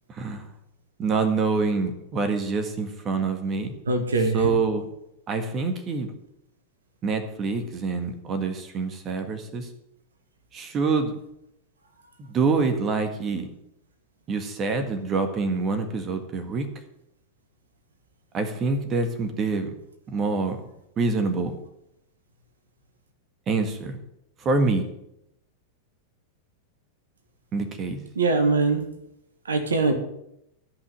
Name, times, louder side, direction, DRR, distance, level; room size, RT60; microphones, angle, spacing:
voice 1, 0.1-0.5 1.0-3.7 4.3-4.8 5.3-6.1 7.0-9.7 10.5-11.1 12.2-13.5 14.3-16.7 18.3-19.7 20.1-20.6 21.0-21.5 23.5-24.0 24.4-24.9 27.5-28.0, right 4 dB, 25° right, 7 dB, 1.7 m, -26 dB
voice 2, 3.9-4.4 28.2-28.8 29.5-29.9, right 3 dB, 70° right, 6 dB, 1.8 m, -22 dB
14.5 x 5.8 x 9.0 m, 0.80 s
figure-of-eight pair, 90°, 0 cm